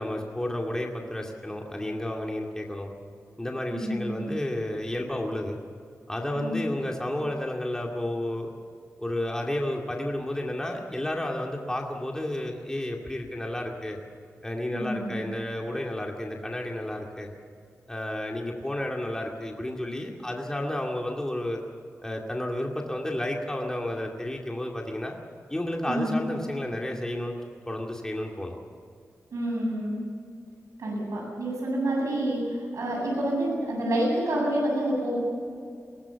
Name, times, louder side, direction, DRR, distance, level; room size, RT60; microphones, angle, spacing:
voice 1, 0.0-2.9 3.4-5.6 6.1-8.5 9.0-14.0 14.4-17.3 17.9-21.6 22.0-25.1 25.5-27.4 27.7-28.6, left 1 dB, 10° left, 0 dB, 2.4 m, -31 dB
voice 2, 3.7-4.3 6.3-6.6 14.7-15.2 25.9-26.2 29.3-30.0 30.8-35.2, right 1 dB, 80° right, -1 dB, 7.7 m, -28 dB
22.5 x 18.5 x 7.1 m, 2.3 s
wide cardioid pair, 95°, 5 cm